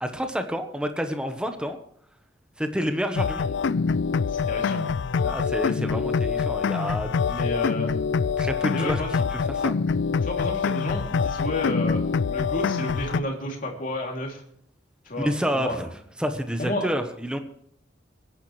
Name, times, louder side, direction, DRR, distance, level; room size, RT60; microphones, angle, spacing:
voice 1, 0.0-1.8 2.6-3.5 5.2-7.4 8.4-9.0 9.6-9.7 15.2-15.9 16.2-17.4, equal, 5° right, 7 dB, 1.1 m, -29 dB
sound 1, 3.2-13.2, left 5 dB, 75° left, 0.4 m, -25 dB
voice 2, 4.3-4.9 7.3-7.9 8.7-9.1 10.2-14.4 15.0-15.9 16.6-16.9, left 1 dB, 45° left, 0 dB, 3.0 m, -31 dB
23.0 x 10.5 x 3.3 m, 0.69 s
head